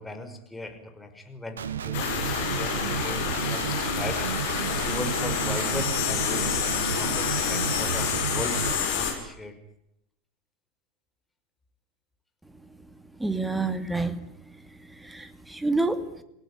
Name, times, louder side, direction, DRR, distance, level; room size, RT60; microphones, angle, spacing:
voice 1, 0.0-4.2 4.8-8.6 8.9-9.6, left 2 dB, 10° left, 5 dB, 5.8 m, -38 dB
Guitar, 1.6-8.7, right 8 dB, 70° right, 1.4 m, -32 dB
sound 1, 1.9-9.1, left 7 dB, 60° left, 7.2 m, -28 dB
voice 2, 13.2-14.2 14.8-16.0, right 3 dB, 5° right, 12 dB, 2.4 m, -28 dB
28.0 x 18.0 x 9.4 m, 0.77 s
figure-of-eight pair, 85°, 0 cm